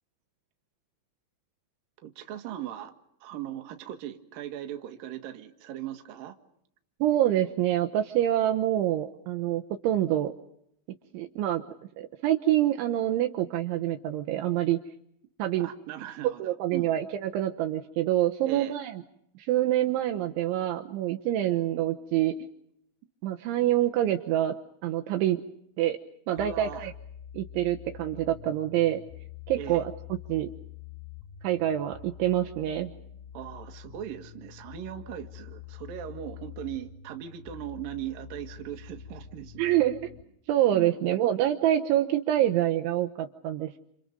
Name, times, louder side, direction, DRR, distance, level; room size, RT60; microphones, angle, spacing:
voice 1, 2.0-2.9 3.2-6.3 15.6-16.9 18.4-18.8 26.3-26.9 29.6-29.8 33.3-39.8 40.7-40.9, right 11 dB, 55° right, 6 dB, 2.9 m, -39 dB
voice 2, 7.0-10.3 11.1-11.6 12.0-14.8 15.4-15.7 16.4-19.0 19.4-22.4 23.2-24.5 24.8-25.4 25.8-26.0 26.3-26.9 27.3-29.0 29.5-30.5 31.4-32.9 39.6-40.1 40.5-43.8, right 12 dB, 75° right, 5 dB, 3.2 m, -26 dB
sound 1, 26.4-40.2, left 10 dB, 75° left, 4.3 m, -46 dB
29.5 x 29.0 x 5.3 m, 0.74 s
omnidirectional pair, 5.9 m